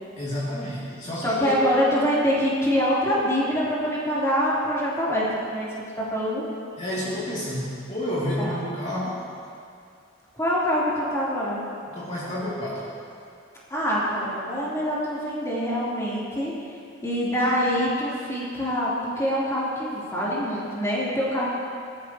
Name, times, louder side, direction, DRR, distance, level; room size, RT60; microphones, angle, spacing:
voice 1, 0.2-1.7 6.8-9.2 11.9-12.9, left 1 dB, 35° left, -9 dB, 2.9 m, -30 dB
voice 2, 1.1-5.7 6.0-6.4 8.4-8.5 10.3-11.6 13.7-16.5 17.0-21.5, equal, 15° left, -8 dB, 3.6 m, -25 dB
22.0 x 14.0 x 3.1 m, 2.4 s
head